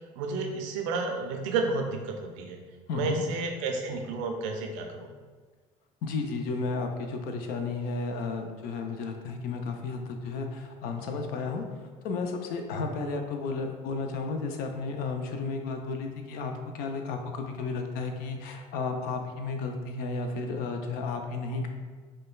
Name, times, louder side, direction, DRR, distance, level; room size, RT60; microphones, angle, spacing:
voice 1, 0.2-2.6 2.9-5.1, right 3 dB, 80° right, 3 dB, 0.5 m, -31 dB
voice 2, 2.9-3.3 6.0-21.7, left 4 dB, 65° left, 5 dB, 0.5 m, -33 dB
5.0 x 2.2 x 2.3 m, 1.5 s
hypercardioid pair, 70°, 16 cm